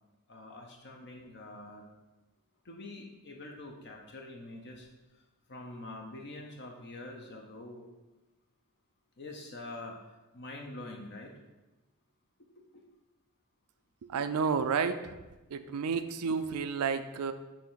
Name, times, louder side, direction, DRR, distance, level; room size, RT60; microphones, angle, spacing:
voice 1, 0.3-1.9 2.6-4.9 5.5-7.9 9.2-11.3 12.7-12.8, left 2 dB, 50° left, 1 dB, 0.7 m, -45 dB
voice 2, 14.1-15.1 15.5-17.3, right 5 dB, 75° right, 10 dB, 0.4 m, -31 dB
7.0 x 3.2 x 5.6 m, 1.1 s
head